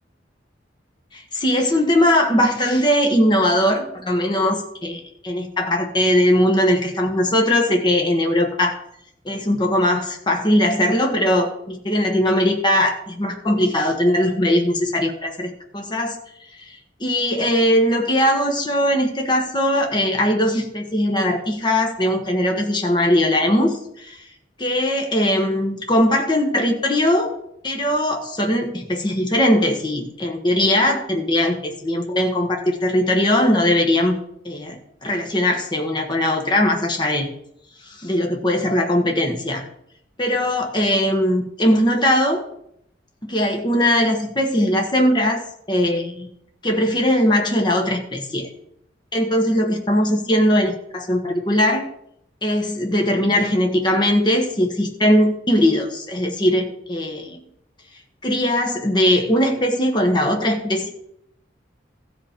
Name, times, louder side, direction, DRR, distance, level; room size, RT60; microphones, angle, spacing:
voice 1, 1.1-8.8 9.2-16.2 17.0-24.2 24.6-27.3 27.6-34.2 34.4-37.3 37.9-39.6 40.2-42.4 43.2-45.4 45.7-46.3 46.6-48.5 49.1-51.8 52.4-57.4 58.2-60.9, left 1 dB, 25° left, 2 dB, 1.2 m, -20 dB
15.0 x 5.2 x 5.1 m, 0.73 s
head